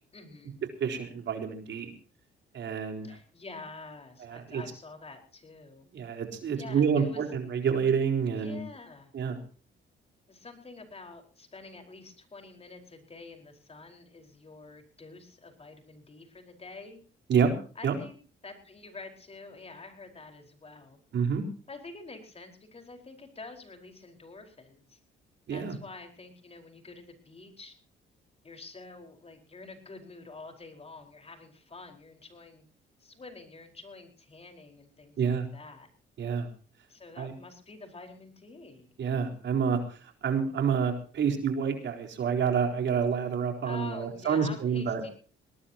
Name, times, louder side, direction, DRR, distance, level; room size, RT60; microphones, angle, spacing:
voice 1, 0.1-0.6 3.0-5.9 6.5-7.2 8.3-9.1 10.3-17.0 17.7-18.2 18.4-21.0 21.7-25.0 25.5-27.7 28.4-32.6 33.0-35.9 36.9-38.9 43.6-45.1, left 3 dB, 30° left, 4 dB, 4.8 m, -47 dB
voice 2, 0.8-1.9 2.5-3.1 4.2-4.6 5.9-8.6 9.1-9.4 17.3-17.5 17.8-18.0 21.1-21.4 25.5-25.8 35.2-35.5 36.2-36.5 37.2-37.3 39.0-45.1, right 6 dB, 65° right, 4 dB, 4.1 m, -28 dB
21.5 x 18.5 x 2.9 m, 0.39 s
cardioid pair, 90°, 20 cm